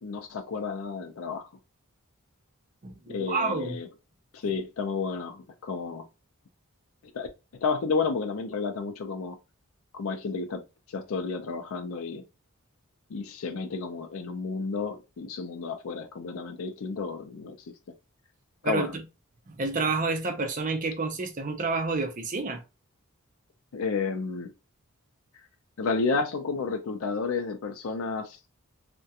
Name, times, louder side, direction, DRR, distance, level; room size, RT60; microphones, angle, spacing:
voice 1, 0.0-1.5 3.1-3.9 4.3-6.1 7.1-7.3 7.6-9.4 9.9-10.6 10.9-12.2 13.1-17.6 18.6-18.9 23.7-24.5 25.8-28.4, left 4 dB, 70° left, 0.4 m, -31 dB
voice 2, 2.8-3.8 18.6-19.0 19.5-22.6, right 3 dB, 35° right, 0.5 m, -29 dB
2.4 x 2.1 x 2.7 m
head